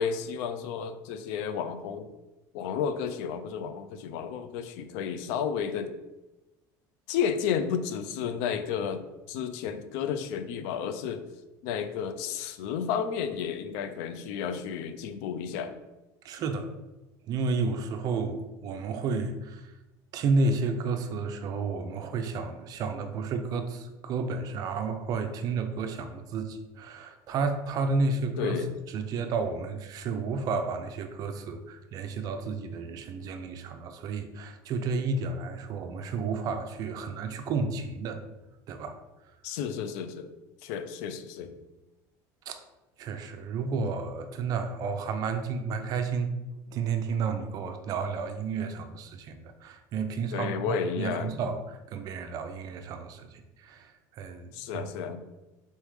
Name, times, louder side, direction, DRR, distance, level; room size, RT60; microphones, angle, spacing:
voice 1, 0.0-2.1 2.5-5.9 7.1-9.0 9.3-11.3 11.6-15.7 28.4-28.7 39.4-40.3 40.6-41.6 43.7-43.8 50.3-51.3 54.5-55.2, left 7 dB, 80° left, 10 dB, 0.4 m, -32 dB
voice 2, 16.2-16.7 17.3-19.6 20.1-28.5 28.9-38.2 38.7-39.0 42.5-42.6 43.0-46.3 46.7-53.9 54.2-54.9, right 4 dB, 45° right, 7 dB, 0.5 m, -31 dB
4.1 x 3.5 x 3.1 m, 1.0 s
cardioid pair, 135°, 9 cm